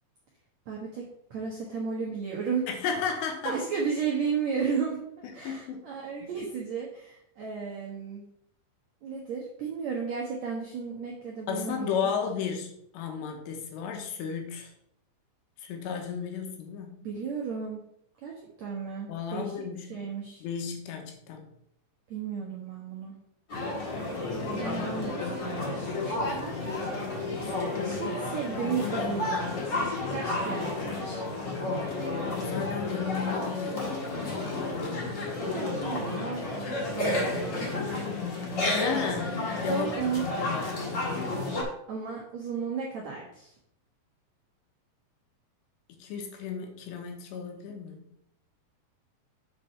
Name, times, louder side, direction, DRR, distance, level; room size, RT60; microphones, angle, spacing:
voice 1, 0.7-1.0 1.3-2.7 3.4-5.0 5.3-8.2 9.0-12.0 17.0-17.8 18.2-18.3 18.6-19.5 19.8-20.4 22.1-23.1 24.3-26.8 27.8-29.5 30.1-31.2 35.4-36.7 36.9-38.0 38.6-38.9 39.7-40.2 41.9-43.5, right 6 dB, 75° right, -2 dB, 1.6 m, -34 dB
voice 2, 2.7-3.6 5.2-5.9 6.2-6.3 11.5-14.7 15.6-17.0 19.1-19.9 20.4-21.4 27.6-27.9 31.6-35.1 38.7-40.9 46.0-48.0, left 6 dB, 80° left, 3 dB, 3.3 m, -34 dB
sound 1, 23.5-41.6, left 2 dB, 45° left, 1.4 m, -31 dB
7.7 x 4.8 x 5.6 m, 0.74 s
omnidirectional pair, 5.0 m